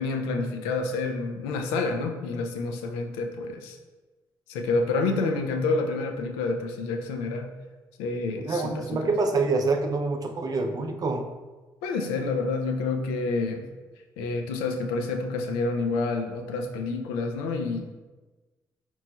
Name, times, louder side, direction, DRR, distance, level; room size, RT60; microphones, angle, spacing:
voice 1, 0.0-3.8 4.5-7.5 8.0-9.1 11.8-13.6 14.2-18.0, left 3 dB, 90° left, 4 dB, 0.4 m, -28 dB
voice 2, 8.5-11.3, right 3 dB, 40° right, 5 dB, 0.5 m, -26 dB
3.9 x 3.0 x 2.2 m, 1.2 s
supercardioid pair, 55°, 9 cm